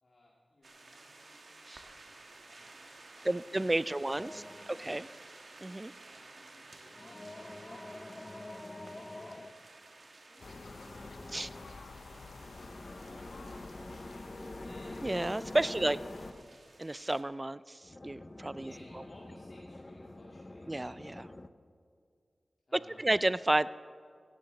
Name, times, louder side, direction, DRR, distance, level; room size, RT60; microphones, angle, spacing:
voice 1, 0.0-1.5 1.8-5.2 6.0-7.5 8.2-9.4 10.3-14.9 15.6-16.3 18.6-20.7 22.7-23.1, left 1 dB, 55° left, -5 dB, 2.4 m, -59 dB
sound 1, 0.6-17.2, right 2 dB, 60° right, 1.3 m, -54 dB
voice 2, 3.3-4.4 4.8-5.1 5.6-5.9 11.3-11.5 15.0-16.0 16.8-18.7 20.7-21.3 22.7-23.7, right 1 dB, 25° right, 17 dB, 0.3 m, -31 dB
sound 2, 4.2-5.1 6.9-9.5 10.4-11.7 12.4-16.5 17.8-21.5, left 2 dB, 30° left, 0.6 m, -46 dB
sound 3, 10.4-16.3, left 4 dB, 90° left, 0.7 m, -49 dB
17.0 x 13.5 x 4.1 m, 2.2 s
wide cardioid pair, 75°, 0 cm